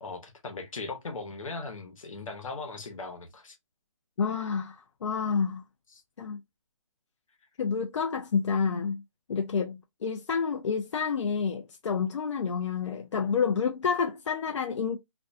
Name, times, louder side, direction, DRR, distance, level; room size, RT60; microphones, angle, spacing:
voice 1, 0.0-3.6 5.9-6.0, left 3 dB, 85° left, 1.0 m, -39 dB
voice 2, 4.2-5.6 6.2-6.4 7.6-9.0 9.3-15.0, left 6 dB, 65° left, 0.4 m, -29 dB
2.5 x 2.2 x 2.4 m
hypercardioid pair, 175°, 17 cm